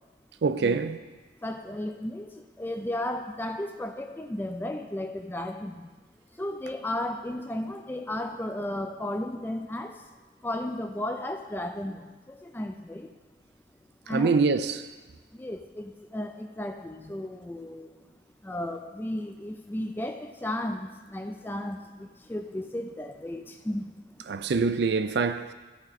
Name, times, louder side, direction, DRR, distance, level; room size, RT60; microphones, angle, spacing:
voice 1, 0.4-1.0 14.1-14.9 24.3-25.5, right 4 dB, 60° right, 0.4 m, -25 dB
voice 2, 1.4-5.9 6.3-10.1 10.4-13.1 14.0-14.4 15.3-18.0 18.4-24.3, left 1 dB, 10° left, 0.3 m, -34 dB
13.0 x 5.0 x 4.1 m
head